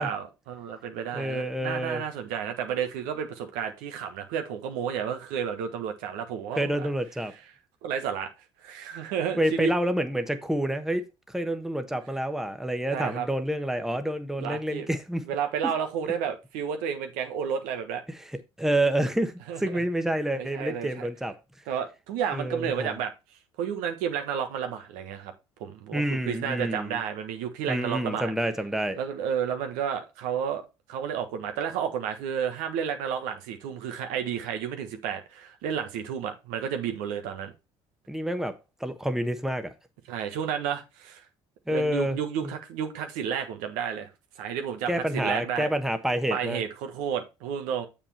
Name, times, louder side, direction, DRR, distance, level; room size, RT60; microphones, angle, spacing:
voice 1, 0.0-6.9 7.8-8.3 8.6-9.7 12.9-13.3 14.4-14.9 15.3-18.0 19.5-19.8 20.4-21.1 21.7-23.1 23.6-25.3 25.6-28.3 28.9-30.6 30.9-37.5 40.1-41.2 41.7-44.1 44.4-45.7 46.3-47.9, right 8 dB, 75° right, 1.4 m, -31 dB
voice 2, 1.1-2.0 6.6-7.3 9.4-15.2 18.1-18.2 18.6-21.3 22.3-23.0 25.9-27.0 27.7-29.0 38.1-39.7 41.7-42.2 44.9-46.6, right 1 dB, 5° right, 1.1 m, -28 dB
7.2 x 5.4 x 4.3 m
hypercardioid pair, 65°, 14 cm